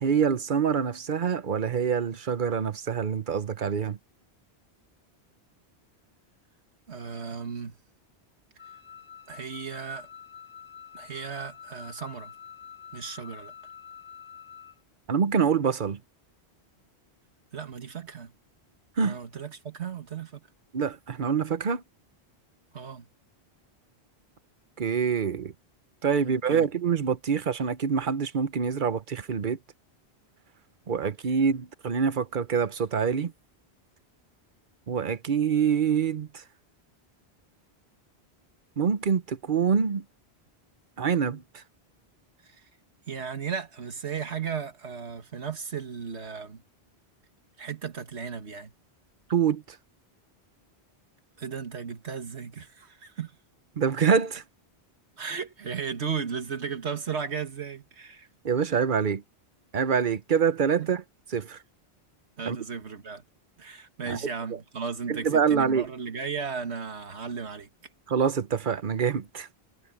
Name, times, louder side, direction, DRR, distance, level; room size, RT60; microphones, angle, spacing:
voice 1, 0.0-4.0 15.1-16.0 19.0-19.2 20.7-21.8 24.8-25.5 26.0-29.6 30.9-33.3 34.9-36.4 38.8-40.0 41.0-41.6 49.3-49.6 53.8-54.4 58.4-59.2 59.7-61.0 61.3-61.6 62.5-62.6 64.1-64.2 65.1-65.8 68.1-69.5, right 6 dB, 50° right, 1.0 m, -25 dB
voice 2, 6.9-7.8 9.3-10.1 10.9-12.3 12.9-13.5 17.5-18.3 19.0-20.4 22.7-23.1 26.2-26.7 42.4-42.6 43.1-46.6 47.6-48.7 51.4-53.4 55.2-58.3 60.8-60.9 62.4-63.2 63.6-67.7, right 6 dB, 85° right, 2.0 m, -35 dB
Wind instrument woodwind instrument, 8.6-14.8, left 8 dB, 25° left, 5.8 m, -47 dB
omnidirectional pair, 1.1 m